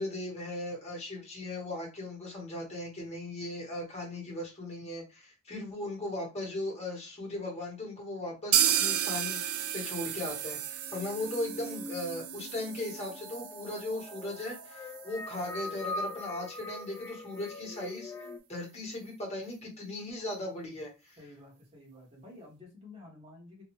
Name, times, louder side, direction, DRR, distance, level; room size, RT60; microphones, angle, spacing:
voice 1, 0.0-9.4 9.7-21.2, left 1 dB, 30° left, -2 dB, 1.5 m, -38 dB
sound 1, 8.5-16.3 16.6-16.7 17.0-17.1 17.5-17.6, right 10 dB, 70° right, 0.4 m, -33 dB
sound 2, 8.9-18.4, left 1 dB, 15° left, 0.4 m, -43 dB
voice 2, 21.2-23.6, left 2 dB, 25° right, -3 dB, 1.5 m, -51 dB
3.1 x 2.6 x 3.1 m, 0.29 s
head